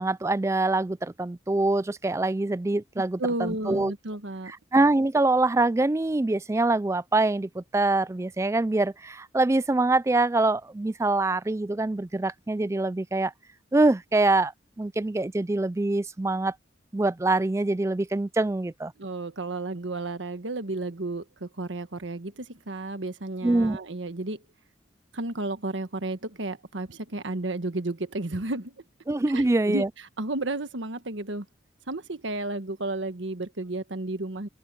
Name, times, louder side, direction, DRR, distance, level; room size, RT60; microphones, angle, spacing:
voice 1, 0.0-3.9 4.5-13.3 13.7-14.5 14.8-16.5 16.9-18.9 23.4-23.8 29.1-29.9, right 2 dB, 15° right, 0.3 m, -24 dB
voice 2, 3.2-4.5 19.0-24.4 25.1-28.7 29.3-31.4 31.9-34.5, right 2 dB, 80° right, 1.4 m, -32 dB
open air
head